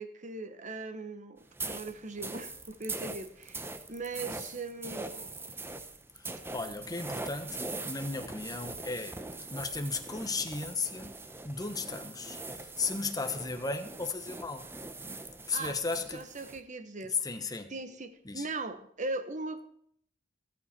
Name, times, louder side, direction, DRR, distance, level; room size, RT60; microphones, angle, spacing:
voice 1, 0.0-5.5 15.5-15.8 16.1-17.1 17.7-19.7, right 3 dB, 40° right, 1.2 m, -39 dB
sound 1, 1.5-16.6, right 3 dB, 15° right, 0.8 m, -42 dB
voice 2, 6.5-9.2 9.5-11.1 11.4-14.7 15.5-16.3 17.0-17.7 18.2-18.5, left 3 dB, 20° left, 1.1 m, -35 dB
14.0 x 13.5 x 4.4 m
head